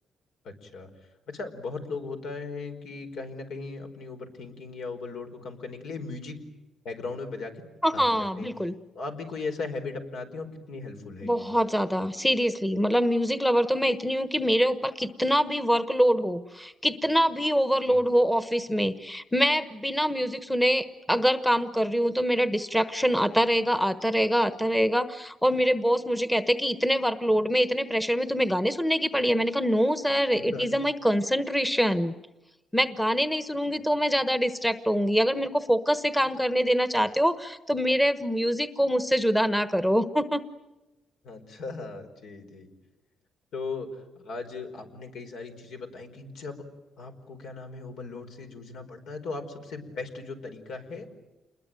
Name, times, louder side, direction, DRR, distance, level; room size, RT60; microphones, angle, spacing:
voice 1, 0.4-0.9 1.3-6.4 6.8-7.6 7.9-8.5 8.9-11.5 17.8-18.0 30.3-30.7 41.2-42.7 43.5-46.6 47.0-51.1, left 3 dB, 75° left, 5 dB, 5.0 m, -38 dB
voice 2, 7.8-8.7 11.2-32.1 32.7-40.4, equal, 5° left, 11 dB, 1.2 m, -24 dB
28.5 x 21.5 x 9.1 m, 1.0 s
cardioid pair, 115°, 0 cm